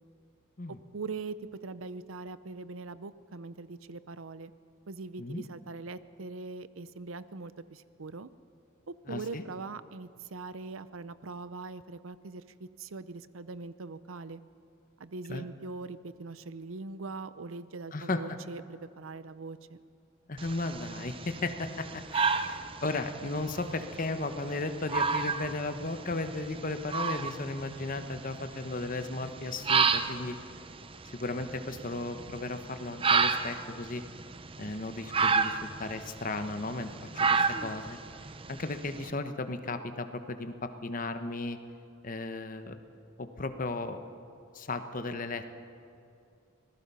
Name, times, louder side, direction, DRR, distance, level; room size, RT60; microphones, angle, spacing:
voice 1, 0.7-1.4 1.6-4.5 4.9-8.3 8.9-14.4 15.0-19.8, right 3 dB, 80° right, 15 dB, 0.7 m, -42 dB
voice 2, 9.1-9.4 15.3-15.5 17.9-18.4 20.3-30.4 31.1-34.0 34.6-38.0 38.5-41.6 42.0-42.8 43.2-44.0 44.5-45.5, left 2 dB, 40° left, 8 dB, 1.1 m, -35 dB
sound 1, 20.4-39.1, right 5 dB, 25° right, 0.6 m, -32 dB
26.0 x 19.0 x 5.6 m, 2.6 s
head